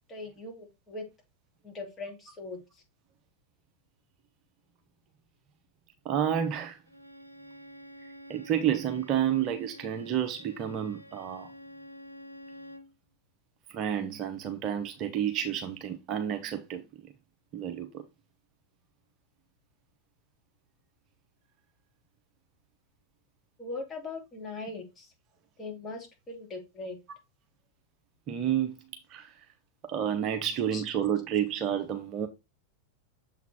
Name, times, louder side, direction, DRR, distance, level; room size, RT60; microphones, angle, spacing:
voice 1, 0.1-1.0 1.6-2.8 23.6-25.1 25.6-27.0 30.7-30.8, left 3 dB, 20° left, 2.6 m, -40 dB
voice 2, 6.0-6.8 8.0-11.5 13.7-17.1 17.5-18.0 28.3-28.8 29.1-29.4 29.8-32.3, right 9 dB, 35° right, 0.8 m, -30 dB
Bowed string instrument, 6.9-12.9, equal, 90° right, 0.5 m, -49 dB
7.0 x 4.0 x 4.3 m
figure-of-eight pair, 90°, 0 cm